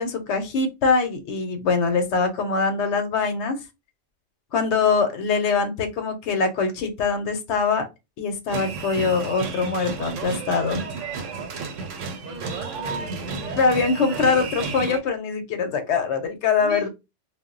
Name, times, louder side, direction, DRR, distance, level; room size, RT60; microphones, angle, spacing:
voice 1, 0.0-3.6 4.5-7.8 8.2-10.8 13.5-16.9, left 4 dB, 70° left, 0.9 m, -23 dB
sound 1, 8.5-15.0, right 4 dB, 90° right, 1.0 m, -32 dB
voice 2, 12.3-13.6 16.6-16.9, equal, 55° right, 0.6 m, -37 dB
2.2 x 2.0 x 3.7 m
omnidirectional pair, 1.3 m